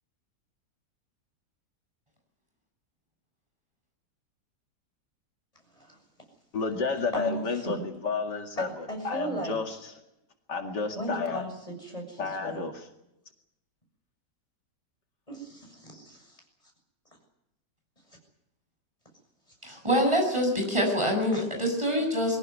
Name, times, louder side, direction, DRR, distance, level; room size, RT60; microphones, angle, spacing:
voice 1, 6.5-9.8 10.5-11.4 12.2-12.7, left 4 dB, 75° left, 4 dB, 2.8 m, -31 dB
voice 2, 7.1-7.9 8.6-9.6 10.9-12.6 15.3-16.4 19.7-19.8 21.3-21.4, right 1 dB, 20° left, 2 dB, 7.3 m, -37 dB
voice 3, 19.6-22.4, equal, 15° right, 2 dB, 7.5 m, -25 dB
23.0 x 17.5 x 9.6 m, 0.84 s
omnidirectional pair, 1.8 m